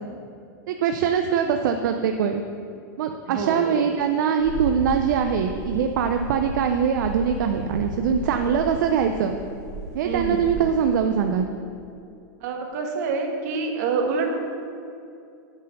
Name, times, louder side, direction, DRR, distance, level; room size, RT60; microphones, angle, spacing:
voice 1, 0.7-2.4 3.0-9.4 9.9-11.5, right 7 dB, 75° right, 6 dB, 0.5 m, -22 dB
voice 2, 3.3-3.8 10.0-10.5 12.4-14.4, right 4 dB, 55° right, 3 dB, 1.3 m, -27 dB
sound 1, 4.4-10.6, equal, 35° right, 1.4 m, -35 dB
8.9 x 4.5 x 6.5 m, 2.5 s
supercardioid pair, 150°, 10 cm